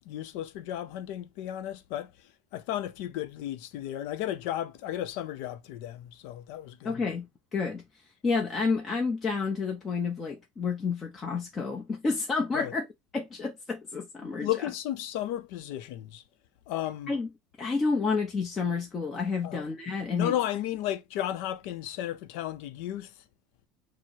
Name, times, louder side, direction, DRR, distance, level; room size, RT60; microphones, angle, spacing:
voice 1, 0.1-2.1 2.5-7.0 12.5-12.7 14.2-16.2 16.7-17.1 19.4-19.7 20.1-23.1, left 12 dB, 70° left, 0.6 m, -34 dB
voice 2, 6.8-7.3 7.5-7.8 8.2-12.9 13.1-14.5 17.1-17.3 17.6-20.3, left 4 dB, 20° left, 0.7 m, -30 dB
4.6 x 2.1 x 4.4 m
cardioid pair, 140°, 0 cm